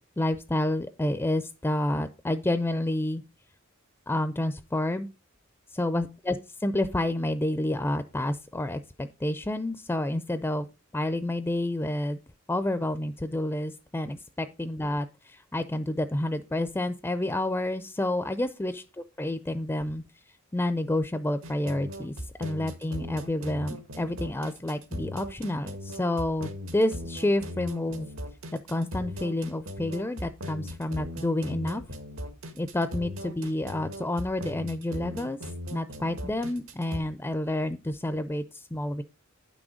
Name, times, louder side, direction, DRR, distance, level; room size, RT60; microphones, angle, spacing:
voice 1, 0.2-3.2 4.1-5.1 5.7-10.7 10.9-12.2 12.5-18.8 19.2-20.0 20.5-22.1 22.4-28.1 28.7-31.8 32.5-35.4 35.7-39.0, left 1 dB, 10° left, 11 dB, 0.4 m, -29 dB
sound 1, 21.4-37.0, equal, 80° right, 1.7 m, -38 dB
9.4 x 6.1 x 5.0 m, 0.30 s
head